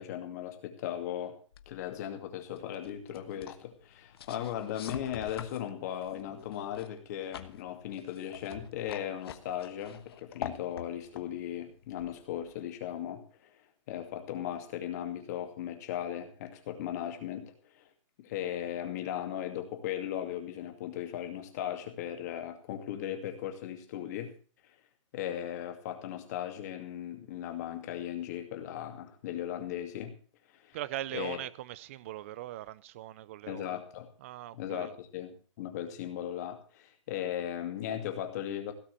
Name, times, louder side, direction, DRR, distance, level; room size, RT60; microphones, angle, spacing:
voice 1, 0.0-1.4 1.7-13.5 13.9-17.9 18.2-24.3 25.1-30.1 30.5-30.8 31.1-31.4 33.5-34.1 34.5-38.7, left 10 dB, 30° left, 2.4 m, -37 dB
sound 1, 1.5-12.6, left 9 dB, 50° left, 1.3 m, -47 dB
voice 2, 30.7-33.8 34.2-34.9, right 14 dB, 25° right, 0.5 m, -40 dB
17.0 x 5.8 x 8.5 m
hypercardioid pair, 165°, 16 cm